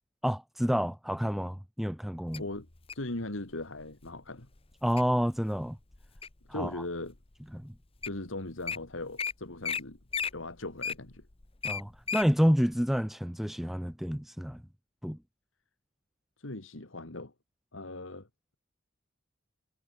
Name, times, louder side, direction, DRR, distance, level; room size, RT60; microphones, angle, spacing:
voice 1, 0.2-2.4 4.8-5.8 6.5-6.7 7.5-7.7 11.6-14.6 15.0-15.2, equal, ahead, 0.4 m, -29 dB
Wild animals, 2.3-3.1 3.8-4.1 4.6-5.0 5.5-6.5 7.1-7.2 7.8-8.2 8.5-8.8 9.2-9.3 9.6-9.8 10.1-12.3 12.7-12.8, left 6 dB, 30° left, 1.0 m, -34 dB
voice 2, 2.9-4.5 6.5-7.1 8.0-10.0 10.3-11.3 16.4-17.3 17.7-18.3, left 2 dB, 75° left, 2.4 m, -39 dB
head